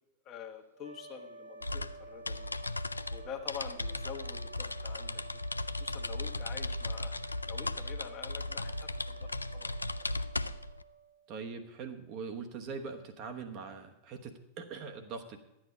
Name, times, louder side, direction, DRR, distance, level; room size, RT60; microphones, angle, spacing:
voice 1, 0.2-2.5 3.1-5.4 5.7-7.2 7.4-9.7, left 7 dB, 35° left, 4 dB, 1.3 m, -46 dB
sound 1, 0.7-11.4, right 5 dB, 85° right, 1.0 m, -51 dB
sound 2, 1.6-10.8, left 2 dB, 80° left, 0.3 m, -37 dB
voice 2, 11.3-15.4, right 5 dB, 40° right, 5 dB, 1.1 m, -42 dB
12.0 x 8.9 x 5.0 m, 0.88 s
figure-of-eight pair, 90°, 0 cm